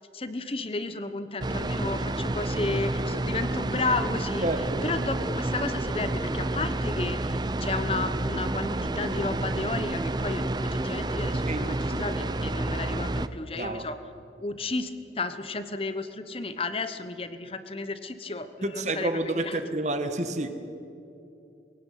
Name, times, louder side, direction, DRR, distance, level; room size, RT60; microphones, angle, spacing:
voice 1, 0.1-4.5 4.8-14.0 14.4-19.6, left 3 dB, 30° left, 11 dB, 1.1 m, -33 dB
sound 1, 1.4-13.3, right 2 dB, 25° right, 0.6 m, -29 dB
voice 2, 4.4-4.8 11.5-12.1 13.5-13.9 18.6-20.5, right 2 dB, 40° right, 8 dB, 1.6 m, -30 dB
23.0 x 17.0 x 9.3 m, 2.8 s
head